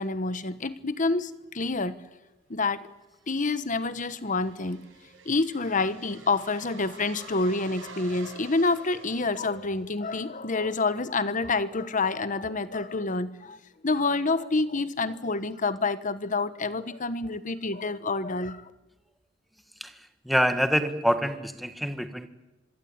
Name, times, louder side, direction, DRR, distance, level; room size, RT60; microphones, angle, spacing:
voice 1, 0.0-2.0 2.5-2.9 3.3-4.8 5.2-18.7, left 3 dB, 40° left, 14 dB, 1.2 m, -28 dB
sound 1, 3.0-10.1, right 4 dB, 80° right, 6.7 m, -49 dB
voice 2, 20.2-22.3, equal, ahead, 9 dB, 1.6 m, -26 dB
25.5 x 23.5 x 8.8 m, 1.0 s
head